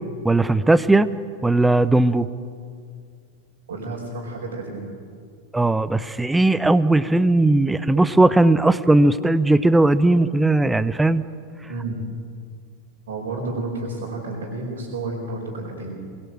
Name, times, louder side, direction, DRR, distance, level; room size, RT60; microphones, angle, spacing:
voice 1, 0.2-1.1 1.4-2.3 5.5-11.2, right 2 dB, 5° right, 15 dB, 0.8 m, -18 dB
voice 2, 3.7-4.9 11.7-12.0 13.1-16.1, right 2 dB, 60° right, -4 dB, 4.9 m, -31 dB
24.0 x 21.0 x 7.9 m, 2.1 s
figure-of-eight pair, 90°, 0 cm